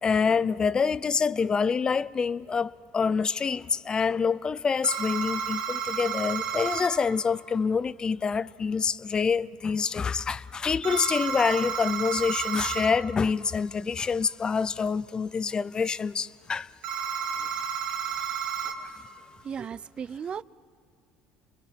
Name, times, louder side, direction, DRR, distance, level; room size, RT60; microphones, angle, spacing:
voice 1, 0.0-16.7, left 5 dB, 30° left, 0.6 m, -26 dB
sound 1, 4.8-6.9 10.8-12.9 16.8-18.7, right 7 dB, 65° right, 2.4 m, -31 dB
voice 2, 19.4-20.4, right 7 dB, 40° right, 0.5 m, -35 dB
27.0 x 21.5 x 7.7 m
supercardioid pair, 90°, 3 cm